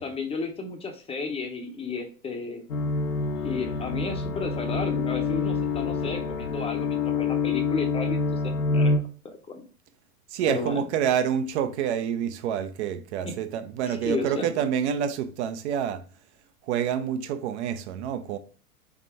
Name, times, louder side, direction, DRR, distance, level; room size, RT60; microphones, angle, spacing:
voice 1, 0.0-2.6 3.4-8.4 8.7-8.9 9.2-9.6 10.5-10.8 13.2-13.3 13.9-14.5, left 4 dB, 15° left, 0.7 m, -33 dB
sound 1, 2.7-9.0, left 4 dB, 75° left, 0.9 m, -27 dB
sound 2, 3.1-6.8, left 5 dB, 90° left, 1.3 m, -42 dB
voice 2, 10.3-16.0 16.7-18.4, right 8 dB, 50° right, 0.7 m, -27 dB
4.0 x 3.7 x 3.4 m
figure-of-eight pair, 95°, 45 cm